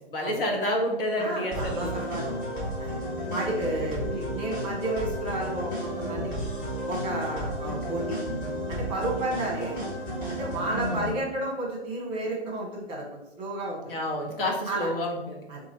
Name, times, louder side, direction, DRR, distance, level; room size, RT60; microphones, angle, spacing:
voice 1, 0.1-1.9 3.3-3.6 4.1-4.2 7.6-8.0 10.7-11.1 13.9-15.5, left 1 dB, 60° left, 0 dB, 1.1 m, -30 dB
voice 2, 1.2-2.4 2.8-2.9 3.3-6.3 6.9-8.2 8.7-9.8 10.3-13.8 14.7-14.9 15.5-15.6, right 2 dB, 15° right, -2 dB, 1.1 m, -32 dB
sound 1, 1.5-11.1, equal, 25° left, 1.3 m, -32 dB
2.8 x 2.4 x 4.2 m, 0.92 s
figure-of-eight pair, 115°, 32 cm